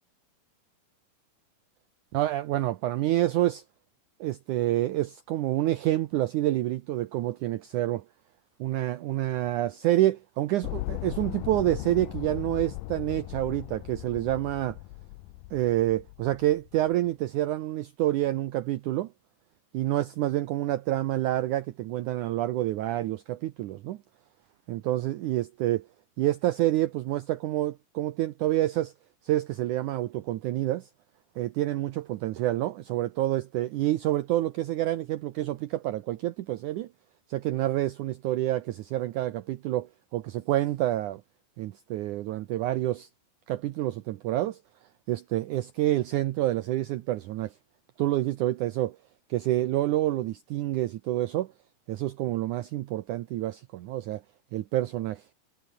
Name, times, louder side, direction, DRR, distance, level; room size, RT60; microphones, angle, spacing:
voice 1, 2.1-3.6 4.2-8.0 8.6-14.8 15.5-19.1 19.7-24.0 24.7-25.9 26.2-28.9 29.2-30.9 31.4-36.9 37.3-41.2 41.6-43.1 43.5-44.6 45.1-47.5 48.0-49.0 49.3-51.5 51.9-54.2 54.5-55.2, right 14 dB, 75° right, 1.9 m, -28 dB
sound 1, 10.6-16.9, left 20 dB, 80° left, 2.0 m, -38 dB
omnidirectional pair, 4.4 m